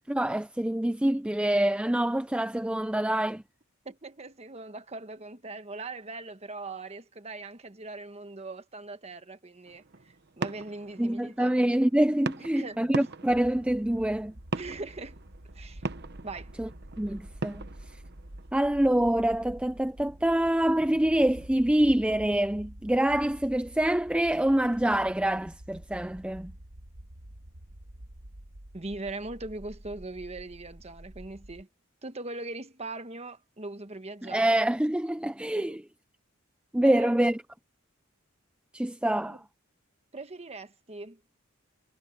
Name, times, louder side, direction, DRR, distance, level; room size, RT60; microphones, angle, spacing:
voice 1, 0.0-3.4 11.0-14.3 16.6-16.7 17.0-17.7 18.5-26.5 34.2-35.8 36.7-37.4 38.7-39.4, right 1 dB, 5° right, 0.4 m, -26 dB
voice 2, 3.8-11.5 12.4-12.8 14.5-15.2 15.5-15.8 16.2-16.5 28.7-31.7 32.0-34.6 35.5-35.8 36.8-37.1 39.3-39.4 40.1-41.2, right 2 dB, 30° right, 1.3 m, -40 dB
sound 1, 9.6-21.8, right 3 dB, 50° right, 1.0 m, -41 dB
sound 2, 13.3-31.6, right 1 dB, 80° right, 1.9 m, -48 dB
head